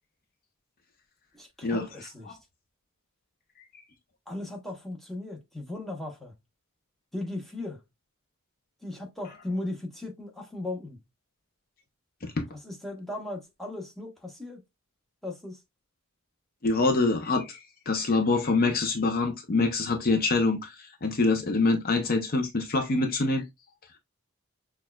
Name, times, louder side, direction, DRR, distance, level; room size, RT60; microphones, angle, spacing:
voice 1, 1.3-2.4 4.3-6.3 7.1-7.8 8.8-11.0 12.6-14.6 15.2-15.6, left 2 dB, ahead, 0.9 m, -37 dB
voice 2, 16.6-17.6 17.9-23.4, left 3 dB, 45° left, 0.6 m, -25 dB
6.1 x 2.3 x 2.2 m
head